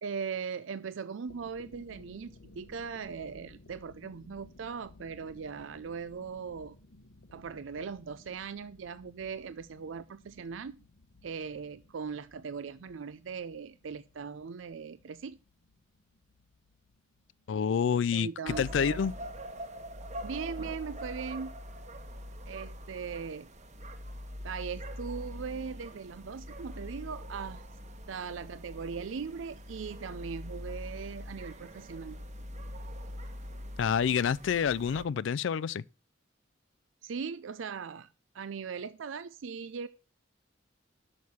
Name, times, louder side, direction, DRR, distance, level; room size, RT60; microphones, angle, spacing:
voice 1, 0.0-6.8 7.3-10.8 11.2-15.4 18.1-19.0 20.2-21.5 22.5-23.5 24.4-27.6 28.1-32.2 37.0-38.1 38.3-39.9, right 6 dB, 80° right, 0.5 m, -39 dB
sound 1, 1.2-20.8, left 2 dB, 90° left, 1.0 m, -58 dB
voice 2, 17.5-19.1 33.8-35.8, left 7 dB, 70° left, 0.4 m, -28 dB
sound 2, 18.5-35.0, equal, 40° right, 1.2 m, -43 dB
6.5 x 6.1 x 6.9 m
head